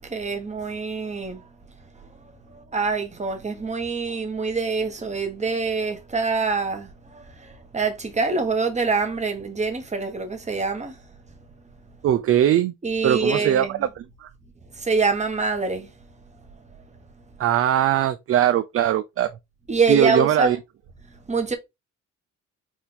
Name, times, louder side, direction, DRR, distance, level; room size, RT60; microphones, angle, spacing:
voice 1, 0.0-1.4 2.5-11.0 12.8-13.8 14.7-15.9 19.7-20.6 21.3-21.5, right 4 dB, 25° right, 1.2 m, -25 dB
voice 2, 12.0-12.7 13.0-14.3 17.4-19.4 19.9-20.6, right 11 dB, 50° right, 0.4 m, -21 dB
4.4 x 2.6 x 3.8 m
cardioid pair, 90°, 30 cm